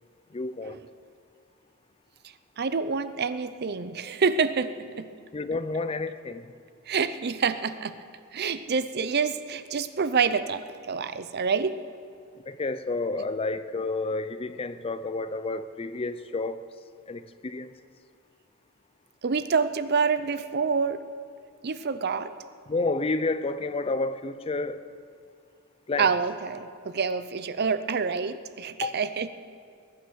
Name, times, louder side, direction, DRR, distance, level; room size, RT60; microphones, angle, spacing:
voice 1, 0.3-0.8 5.3-6.5 12.5-16.6 17.1-17.7 22.7-24.8 25.9-26.1 28.8-29.0, left 3 dB, 25° left, 12 dB, 0.5 m, -30 dB
voice 2, 2.6-5.1 6.9-8.0 8.3-11.8 19.2-21.0 21.6-22.3 26.0-29.3, right 5 dB, 50° right, 13 dB, 0.6 m, -27 dB
21.5 x 9.5 x 6.3 m, 2.3 s
head